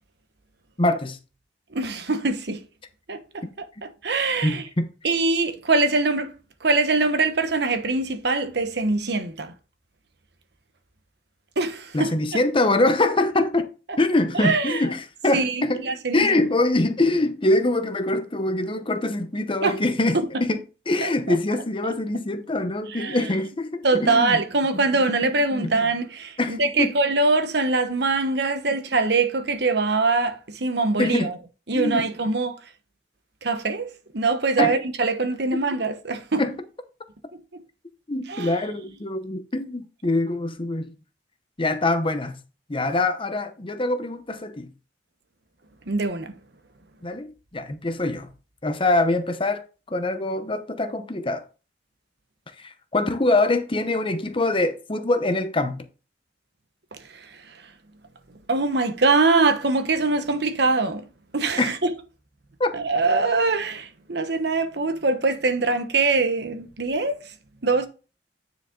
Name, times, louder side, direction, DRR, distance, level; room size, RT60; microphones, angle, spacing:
voice 1, 0.8-1.2 4.4-4.9 11.9-13.7 14.0-15.8 16.1-20.6 20.9-24.4 25.1-25.2 25.5-25.7 26.4-26.9 31.0-31.3 31.7-32.1 34.6-34.8 35.5-35.6 36.4-36.5 38.1-40.9 41.6-42.4 42.7-44.7 47.0-48.3 48.6-49.6 49.9-51.4 52.6-55.9 61.6-61.7 62.6-62.7, left 2 dB, 30° left, 0.9 m, -24 dB
voice 2, 1.7-2.6 3.1-3.4 3.8-4.6 5.0-9.5 11.6-12.1 14.3-14.8 15.3-16.5 19.6-19.8 20.1-20.2 21.0-21.1 21.8-21.9 22.9-23.3 23.8-31.3 31.7-32.6 33.4-36.4 37.3-37.4 38.3-38.6 45.9-46.4 56.9-57.6 58.5-61.1 61.3-61.9 62.7-67.3 67.6-67.9, right 3 dB, 65° right, 1.1 m, -23 dB
9.5 x 5.0 x 3.9 m
head